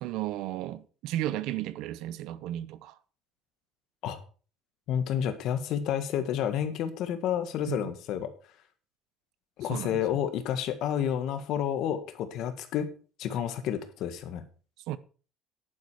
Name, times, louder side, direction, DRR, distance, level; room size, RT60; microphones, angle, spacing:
voice 1, 0.0-3.0 7.7-7.9 9.7-10.0 14.9-15.0, right 14 dB, 65° right, 0.8 m, -34 dB
voice 2, 4.9-8.3 9.6-12.9 13.2-14.5, left 9 dB, 55° left, 1.7 m, -30 dB
10.5 x 9.9 x 4.9 m
cardioid pair, 175°, 0 cm